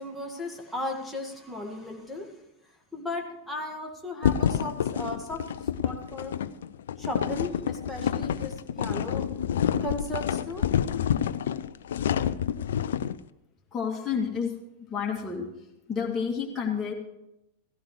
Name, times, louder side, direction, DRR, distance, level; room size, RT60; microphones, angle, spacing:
voice 1, 0.0-2.3 2.6-5.4 5.8-6.3 7.0-9.3 9.8-10.7, left 1 dB, ahead, -1 dB, 1.9 m, -36 dB
sound 1, 4.2-13.2, left 9 dB, 60° left, 0.5 m, -28 dB
voice 2, 13.7-14.5 14.9-15.5 15.9-16.9, left 6 dB, 20° left, -3 dB, 2.5 m, -29 dB
17.0 x 15.0 x 3.2 m, 0.90 s
figure-of-eight pair, 90°, 0 cm